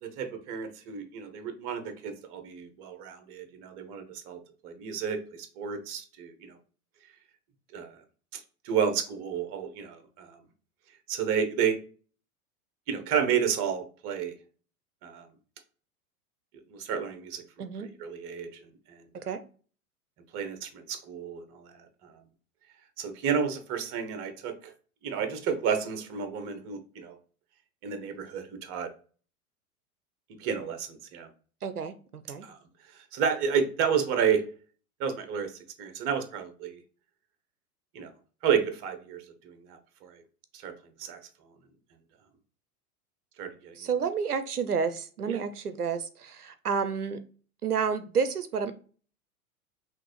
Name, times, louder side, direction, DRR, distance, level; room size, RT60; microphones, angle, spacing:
voice 1, 0.0-6.5 7.7-7.9 8.3-10.4 11.1-11.8 12.9-14.3 15.0-15.3 16.7-18.5 18.9-19.0 20.3-22.1 23.0-24.7 25.0-27.1 27.8-28.9 30.4-31.3 32.4-32.6 33.1-34.4 35.0-35.5 35.8-36.8 37.9-38.1 38.4-40.2 40.6-40.7 41.0-41.2 43.4-43.8 45.3-45.4, right 7 dB, 30° right, 8 dB, 0.8 m, -31 dB
voice 2, 31.6-31.9 32.3-32.5 43.8-47.2 47.6-48.7, right 6 dB, 85° right, 11 dB, 0.5 m, -30 dB
5.8 x 2.6 x 3.0 m, 0.40 s
figure-of-eight pair, 95°, 44 cm